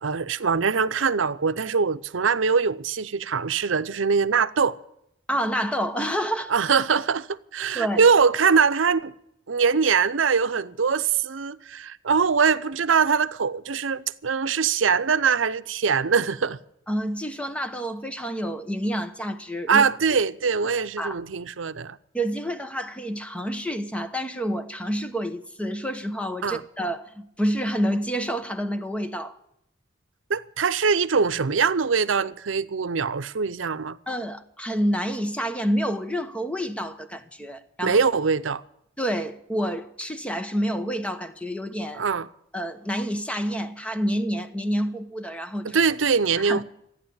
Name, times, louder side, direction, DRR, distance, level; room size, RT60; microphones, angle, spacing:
voice 1, 0.0-4.8 6.5-7.3 7.5-9.1 9.5-16.6 19.7-22.0 26.4-26.6 30.3-34.0 37.8-38.6 42.0-42.3 45.6-46.6, right 5 dB, 75° right, 0.7 m, -22 dB
voice 2, 5.3-6.5 7.7-8.0 16.9-19.8 21.0-21.2 22.1-29.4 34.1-38.0 39.0-42.0 42.5-45.8 46.4-46.6, equal, 5° left, 1.1 m, -28 dB
14.0 x 9.8 x 8.7 m
head